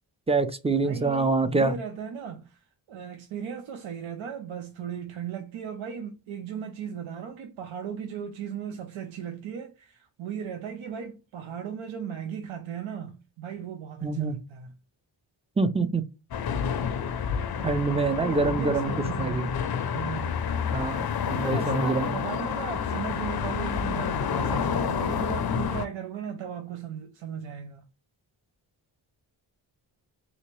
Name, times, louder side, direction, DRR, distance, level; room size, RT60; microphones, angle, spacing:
voice 1, 0.3-1.7 14.0-14.4 15.6-16.0 17.6-19.5 20.7-22.1, right 3 dB, 15° right, 0.4 m, -26 dB
voice 2, 0.8-14.7 17.9-20.4 21.3-27.8, right 8 dB, 80° right, 0.6 m, -37 dB
sound 1, 16.3-25.9, left 7 dB, 50° left, 0.5 m, -29 dB
3.3 x 2.8 x 3.0 m
cardioid pair, 75°, 47 cm